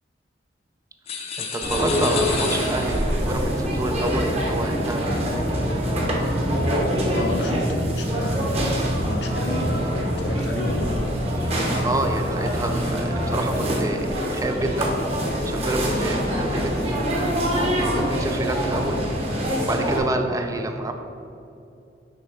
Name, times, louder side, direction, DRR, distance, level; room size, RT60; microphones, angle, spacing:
sound 1, 1.1-3.2, left 6 dB, 35° left, 0.6 m, -31 dB
voice 1, 1.4-5.5 11.4-14.9 15.4-16.7 17.5-19.0 19.7-20.9, right 2 dB, 20° right, 5 dB, 0.3 m, -28 dB
sound 2, 1.6-20.0, equal, 35° right, 1.0 m, -25 dB
sound 3, 5.3-13.4, equal, 90° left, 1.2 m, -29 dB
voice 2, 7.1-10.9 20.5-20.6, left 1 dB, 70° left, 3 dB, 0.7 m, -31 dB
6.5 x 3.4 x 5.5 m, 2.7 s
head